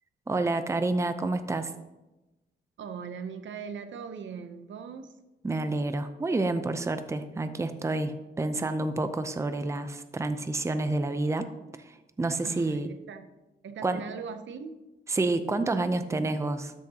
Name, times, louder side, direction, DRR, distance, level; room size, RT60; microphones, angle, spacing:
voice 1, 0.3-1.7 5.4-11.5 11.8-12.9 13.8-14.0 15.1-16.7, right 2 dB, 15° right, 10 dB, 0.5 m, -29 dB
voice 2, 2.8-5.2 12.4-13.3 13.6-14.7, right 6 dB, 75° right, 9 dB, 0.7 m, -40 dB
12.5 x 6.4 x 2.8 m, 1.0 s
cardioid pair, 100°, 19 cm